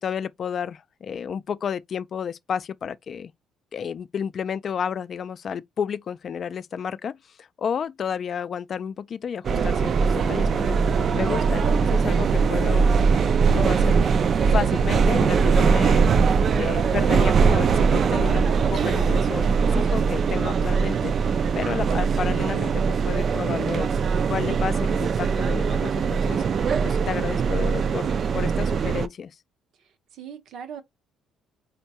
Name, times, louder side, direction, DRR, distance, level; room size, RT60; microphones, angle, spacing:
voice 1, 0.0-3.3 3.7-10.8 11.1-12.9 13.5-14.1 14.5-21.2 21.6-23.9 24.3-29.3, left 7 dB, 45° left, 0.3 m, -31 dB
sound 1, 9.4-29.1, right 5 dB, 50° right, 0.3 m, -21 dB
voice 2, 22.0-22.5 30.2-30.8, right 8 dB, 70° right, 0.7 m, -39 dB
4.4 x 2.1 x 2.7 m
cardioid pair, 100°, 0 cm